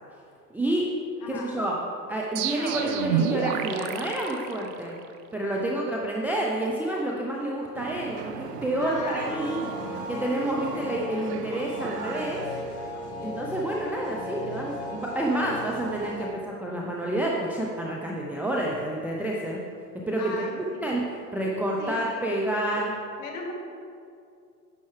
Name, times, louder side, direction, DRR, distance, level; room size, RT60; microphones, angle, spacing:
voice 1, 0.5-0.9 1.3-1.8 2.1-5.0 5.3-9.6 10.1-12.5 13.2-19.6 20.0-22.9, right 1 dB, 5° right, -3 dB, 0.5 m, -29 dB
voice 2, 1.2-1.5 8.8-9.3 10.6-10.8 20.2-20.9 21.8-22.3 23.2-23.5, left 3 dB, 40° left, 0 dB, 1.9 m, -38 dB
sound 1, 2.3-5.1, right 8 dB, 55° right, 0.7 m, -29 dB
sound 2, 7.8-13.3, right 6 dB, 80° right, 0.8 m, -39 dB
sound 3, 9.2-16.3, left 1 dB, 65° left, 2.0 m, -36 dB
10.5 x 6.9 x 3.3 m, 2.4 s
hypercardioid pair, 100°, 47 cm